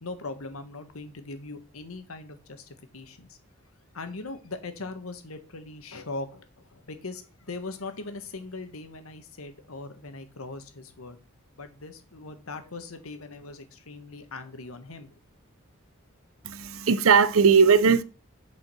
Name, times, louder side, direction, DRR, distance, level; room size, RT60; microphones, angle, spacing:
voice 1, 0.0-3.4 3.9-11.2 11.6-15.2, left 3 dB, 85° left, 1.4 m, -40 dB
voice 2, 16.4-18.0, right 5 dB, 75° right, 0.7 m, -19 dB
7.4 x 4.9 x 6.1 m
head